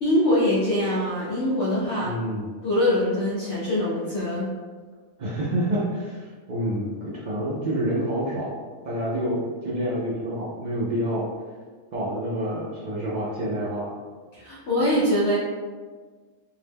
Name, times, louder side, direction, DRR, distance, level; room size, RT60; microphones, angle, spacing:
voice 1, 0.0-2.1 2.6-4.5 14.3-15.4, left 1 dB, 65° left, -9 dB, 0.9 m, -23 dB
voice 2, 2.0-2.5 5.2-11.3 11.9-13.9, right 1 dB, 80° right, -5 dB, 0.4 m, -28 dB
2.7 x 2.1 x 3.3 m, 1.5 s
omnidirectional pair, 1.3 m